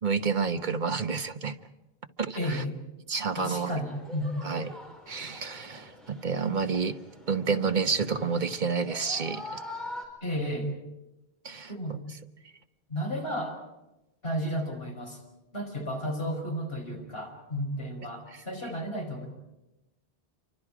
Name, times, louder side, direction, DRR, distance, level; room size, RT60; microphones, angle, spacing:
voice 1, 0.0-1.6 2.2-2.6 3.1-3.7 4.4-4.7 5.1-7.0 7.3-9.6 11.4-12.0, right 5 dB, 50° right, 1.2 m, -29 dB
voice 2, 2.4-2.7 3.4-4.4 10.2-10.7 11.7-12.0 12.9-13.6 14.2-15.2 15.5-19.3, equal, 70° left, 5.5 m, -32 dB
sound 1, 3.9-10.0, left 1 dB, ahead, 5.0 m, -44 dB
29.0 x 24.5 x 5.0 m
omnidirectional pair, 1.1 m